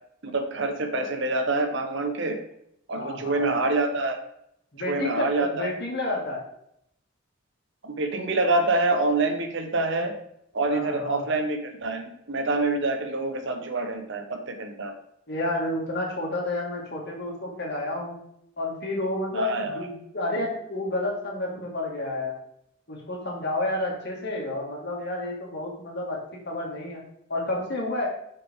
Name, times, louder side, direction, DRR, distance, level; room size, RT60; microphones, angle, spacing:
voice 1, 0.2-2.4 2.9-4.2 4.8-5.7 7.8-10.1 10.5-14.9 19.3-19.9, right 2 dB, 60° right, 5 dB, 1.1 m, -26 dB
voice 2, 2.9-3.5 4.7-6.4 10.7-11.2 15.3-18.2 18.6-22.3 22.9-26.2 26.5-27.0 27.3-28.1, left 2 dB, 55° left, -1 dB, 2.3 m, -30 dB
6.8 x 6.7 x 3.7 m, 0.74 s
head